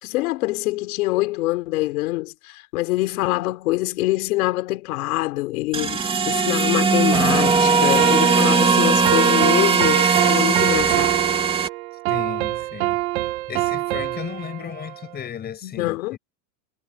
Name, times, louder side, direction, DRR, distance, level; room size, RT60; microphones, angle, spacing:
voice 1, 0.0-11.2 15.6-16.2, left 19 dB, 80° left, 4.4 m, -25 dB
sound 1, 5.7-11.7, right 5 dB, 10° right, 2.7 m, -19 dB
sound 2, 8.0-15.3, right 20 dB, 70° right, 2.4 m, -26 dB
voice 2, 12.1-13.0 13.5-16.0, left 9 dB, 20° left, 7.2 m, -34 dB
supercardioid pair, 170°, 43 cm